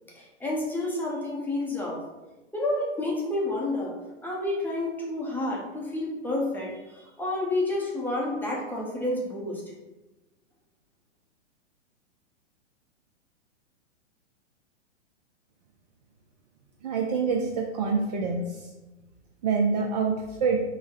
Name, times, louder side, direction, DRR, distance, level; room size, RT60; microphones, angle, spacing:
voice 1, 0.1-2.0 2.5-4.0 4.2-9.6, left 2 dB, 5° left, -4 dB, 0.6 m, -30 dB
voice 2, 16.8-18.7 19.4-20.6, right 5 dB, 35° right, 1 dB, 0.4 m, -26 dB
5.4 x 2.0 x 3.7 m, 1.1 s
hypercardioid pair, 125°, 37 cm